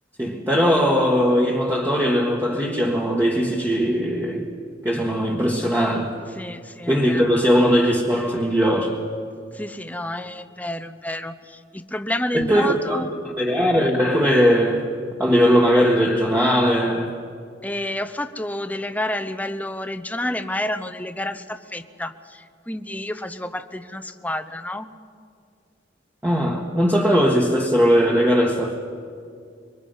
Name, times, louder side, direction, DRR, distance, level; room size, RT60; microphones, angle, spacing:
voice 1, 0.2-4.5 4.8-6.1 6.9-9.0 12.3-17.1 26.2-28.8, equal, 15° right, 1.4 m, -19 dB
voice 2, 6.3-7.2 9.5-13.1 17.6-24.9, left 1 dB, 10° left, 0.7 m, -29 dB
26.0 x 24.0 x 5.6 m
head